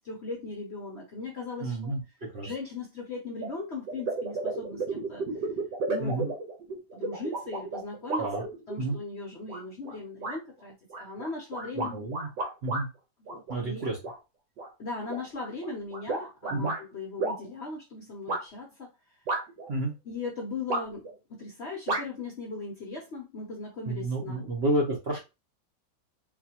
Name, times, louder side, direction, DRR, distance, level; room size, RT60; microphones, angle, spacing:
voice 1, 0.0-1.9 2.4-5.2 5.9-6.4 6.9-8.3 8.7-12.3 13.3-13.8 14.8-19.2 20.0-24.5, left 3 dB, 55° left, -1 dB, 0.8 m, -38 dB
voice 2, 1.6-2.0 2.3-2.5 6.0-6.3 8.2-8.4 8.8-9.0 11.7-12.3 12.6-12.9 13.5-14.0 16.5-16.7 19.7-19.9 23.9-25.2, right 2 dB, 50° right, -3 dB, 0.8 m, -30 dB
sound 1, 3.4-3.5 3.9-8.9 9.5-9.9 10.2-10.4 10.9-12.8 13.3-14.2 14.6-16.8 17.2-17.4 18.3-18.4 19.3-19.7 20.7-21.1 21.9-22.0, right 3 dB, 80° right, 1.6 m, -32 dB
4.0 x 2.5 x 2.8 m, 0.27 s
omnidirectional pair, 1.9 m